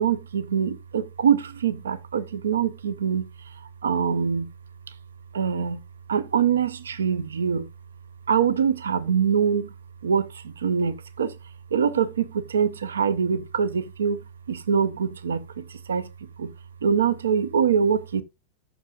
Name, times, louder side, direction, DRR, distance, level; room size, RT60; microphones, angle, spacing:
voice 1, 0.0-4.5 5.3-5.8 6.1-7.7 8.3-9.7 10.0-11.4 11.7-16.1 16.4-16.5 16.8-18.2, right 7 dB, 70° right, 0.6 m, -24 dB
13.5 x 5.9 x 2.4 m
figure-of-eight pair, 90°, 0 cm